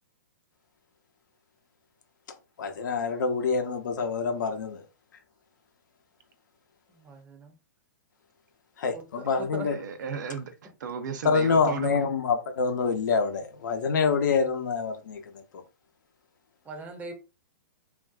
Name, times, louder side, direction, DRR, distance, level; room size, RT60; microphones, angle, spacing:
voice 1, 2.6-4.8 8.8-9.8 11.2-15.4, left 5 dB, 70° left, 0.7 m, -26 dB
voice 2, 6.9-7.6 8.9-9.7 16.6-17.1, right 2 dB, 15° right, 0.5 m, -40 dB
voice 3, 9.7-12.1, right 6 dB, 65° right, 0.6 m, -35 dB
3.3 x 2.5 x 2.3 m
hypercardioid pair, 140°, 11 cm